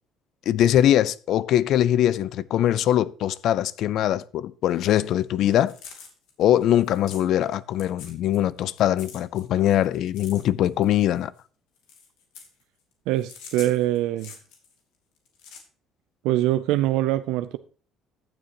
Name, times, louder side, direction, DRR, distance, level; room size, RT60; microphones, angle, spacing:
voice 1, 0.5-5.7 6.4-11.3, left 11 dB, 65° left, 0.4 m, -22 dB
sound 1, 5.5-7.5 7.8-8.5 8.8-11.4 11.8-12.6 13.2-14.7 15.2-15.6, left 6 dB, 80° left, 2.4 m, -45 dB
voice 2, 13.1-14.3 16.2-17.6, right 14 dB, 80° right, 0.4 m, -23 dB
15.0 x 7.0 x 3.0 m
supercardioid pair, 90°, 0 cm